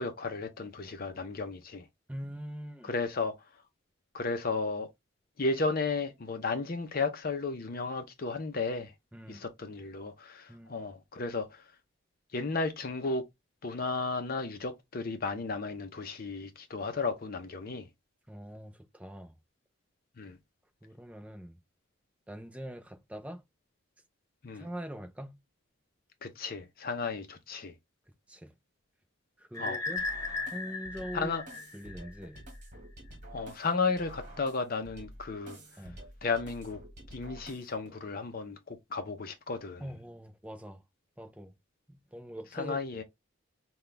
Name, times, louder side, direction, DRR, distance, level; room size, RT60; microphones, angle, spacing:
voice 1, 0.0-1.9 2.8-3.3 4.1-4.9 5.4-8.9 9.3-11.6 12.3-13.2 13.6-17.8 20.2-20.4 24.4-24.7 26.2-27.7 29.6-29.8 31.1-31.4 33.3-35.9 36.2-36.8 37.1-39.8 42.5-43.0, left 3 dB, 45° left, 0.6 m, -34 dB
voice 2, 2.1-2.9 9.1-9.4 10.5-10.7 18.3-19.3 20.8-21.6 22.3-23.4 24.5-25.4 28.3-28.5 29.4-30.0 30.5-31.4 31.7-32.5 35.8-36.0 39.8-40.8 41.2-41.5 41.9-42.8, equal, 5° right, 0.6 m, -43 dB
sound 1, 29.5-32.4, left 3 dB, 15° left, 1.0 m, -37 dB
sound 2, 30.0-38.0, right 1 dB, 40° right, 1.4 m, -49 dB
5.7 x 2.3 x 3.3 m
head